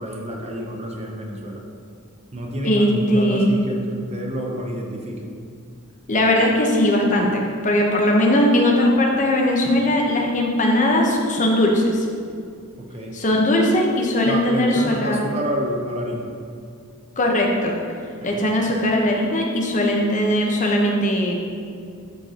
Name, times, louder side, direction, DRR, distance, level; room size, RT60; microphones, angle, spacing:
voice 1, 0.0-1.6 2.3-5.3 12.8-13.2 14.2-16.3 18.2-18.4, right 1 dB, 30° right, 1 dB, 0.9 m, -29 dB
voice 2, 2.6-3.5 6.1-12.1 13.1-15.2 17.2-17.8 18.2-21.5, left 1 dB, 35° left, 0 dB, 1.0 m, -19 dB
12.5 x 5.2 x 3.0 m, 2.3 s
head